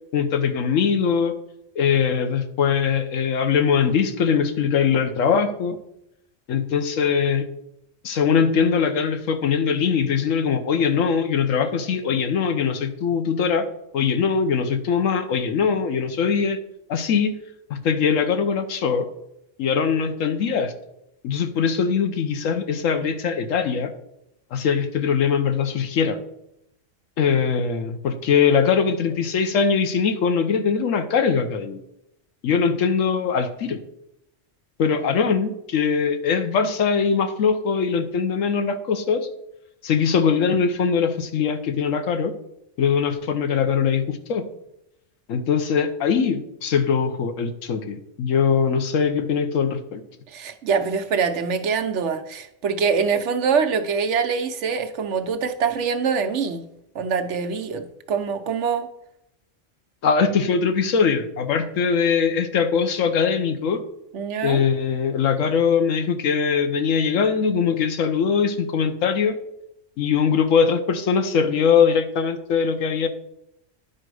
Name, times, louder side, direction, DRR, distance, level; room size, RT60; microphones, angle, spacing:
voice 1, 0.1-1.3 1.8-5.8 6.5-7.5 8.0-13.7 13.9-16.6 16.9-17.4 17.7-19.1 19.6-20.7 21.2-23.9 24.5-26.2 27.2-31.8 32.4-33.8 34.8-39.3 39.8-42.3 42.8-44.5 45.3-50.0 60.0-63.8 64.4-69.4 70.0-73.1, left 6 dB, 80° left, 9 dB, 1.2 m, -21 dB
voice 2, 50.3-56.6 56.9-58.9 64.1-64.6, right 6 dB, 65° right, 8 dB, 1.0 m, -24 dB
10.0 x 5.0 x 4.7 m, 0.81 s
omnidirectional pair, 1.3 m